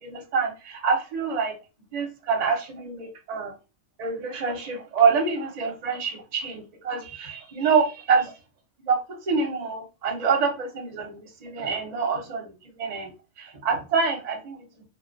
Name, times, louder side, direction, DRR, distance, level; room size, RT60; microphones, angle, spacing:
voice 1, 0.0-1.6 1.9-3.5 4.0-8.3 8.8-13.1 13.4-14.9, right 5 dB, 40° right, 2 dB, 0.6 m, -26 dB
2.2 x 2.2 x 2.5 m, 0.29 s
omnidirectional pair, 1.3 m